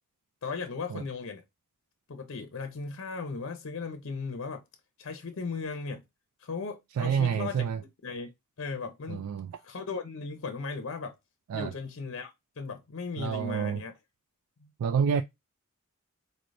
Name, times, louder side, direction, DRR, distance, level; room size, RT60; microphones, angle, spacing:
voice 1, 0.4-1.4 2.1-4.6 5.0-6.0 6.4-7.6 8.0-8.3 8.6-9.3 9.6-11.1 11.5-12.3 12.6-13.9 14.6-14.7, left 4 dB, 60° left, 0.6 m, -37 dB
voice 2, 7.0-7.8 9.1-9.5 11.5-11.7 13.2-13.8 14.8-15.2, right 7 dB, 75° right, 0.3 m, -28 dB
4.2 x 3.2 x 2.5 m
head